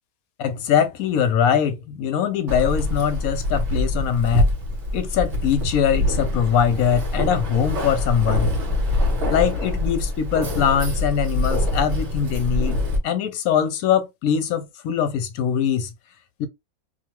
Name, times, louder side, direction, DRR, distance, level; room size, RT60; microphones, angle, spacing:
voice 1, 0.4-4.5 4.9-8.5 9.3-15.9 16.4-16.5, left 8 dB, 75° left, 1.0 m, -22 dB
Keys jangling, 2.5-13.0, left 1 dB, 55° right, 1.2 m, -24 dB
2.8 x 2.3 x 2.9 m
omnidirectional pair, 1.5 m